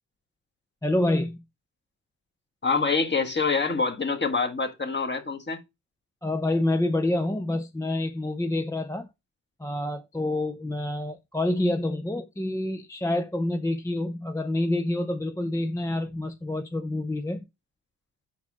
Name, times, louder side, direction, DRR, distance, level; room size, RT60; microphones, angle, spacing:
voice 1, 0.8-1.4 6.2-9.1 9.6-17.4, left 1 dB, 10° left, 0.5 m, -27 dB
voice 2, 2.6-5.6, left 4 dB, 25° left, 1.4 m, -26 dB
5.9 x 4.7 x 5.9 m
cardioid pair, 75°, 41 cm